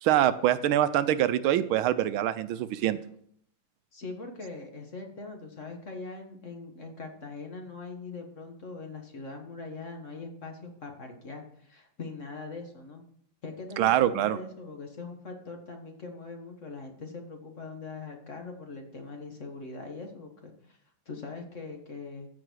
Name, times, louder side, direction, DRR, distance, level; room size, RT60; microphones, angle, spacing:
voice 1, 0.0-3.0 13.8-14.4, right 12 dB, 90° right, 13 dB, 1.5 m, -24 dB
voice 2, 3.9-13.0 13.4-20.8 21.0-22.3, left 3 dB, 40° left, 3 dB, 1.7 m, -42 dB
14.5 x 5.0 x 6.3 m, 0.65 s
omnidirectional pair, 2.2 m